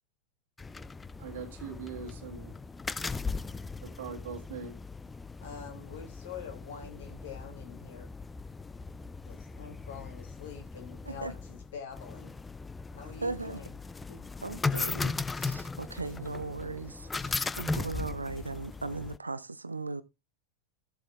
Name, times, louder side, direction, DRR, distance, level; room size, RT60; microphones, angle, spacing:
Iwans Neighbour Pica Pica, 0.6-19.2, left 4 dB, 10° left, 0.4 m, -38 dB
voice 1, 1.2-2.5 4.0-4.8, right 5 dB, 55° right, 1.7 m, -41 dB
voice 2, 5.4-8.1 9.3-12.3 12.9-13.8 14.1-14.2, left 7 dB, 60° left, 2.8 m, -45 dB
voice 3, 13.2-13.6 14.4-20.0, right 3 dB, 80° right, 0.5 m, -38 dB
14.5 x 7.9 x 2.4 m
figure-of-eight pair, 90°, 0 cm